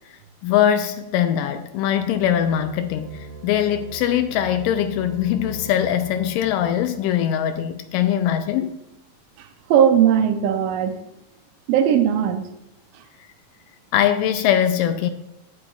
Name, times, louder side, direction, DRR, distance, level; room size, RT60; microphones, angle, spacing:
voice 1, 0.4-8.8 13.9-15.1, left 10 dB, 80° left, 2.1 m, -21 dB
sound 1, 1.9-7.0, right 2 dB, 50° right, 2.8 m, -40 dB
voice 2, 9.4-11.0 11.7-12.4, right 9 dB, 80° right, 2.3 m, -18 dB
9.8 x 8.9 x 2.4 m
omnidirectional pair, 4.1 m